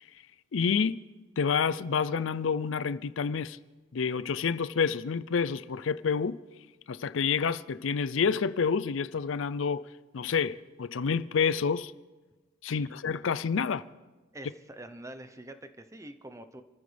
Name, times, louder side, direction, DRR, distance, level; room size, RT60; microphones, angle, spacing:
voice 1, 0.5-1.0 1.4-3.6 3.9-6.4 6.9-9.8 10.1-11.9 12.6-13.8, left 6 dB, 90° left, 0.5 m, -28 dB
voice 2, 14.3-16.6, right 1 dB, 15° right, 0.9 m, -45 dB
28.5 x 14.5 x 3.4 m
head